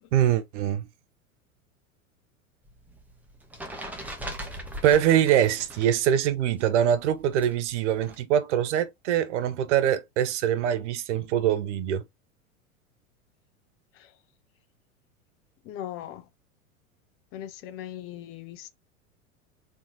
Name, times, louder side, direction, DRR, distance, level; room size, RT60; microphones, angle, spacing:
voice 1, 0.1-0.9 4.8-12.0, right 10 dB, 60° right, 0.7 m, -23 dB
sound 1, 2.7-6.0 6.3-8.2, equal, 5° right, 0.9 m, -40 dB
voice 2, 15.6-16.3 17.3-18.7, left 11 dB, 35° left, 0.6 m, -39 dB
4.4 x 2.8 x 2.8 m
figure-of-eight pair, 90°, 41 cm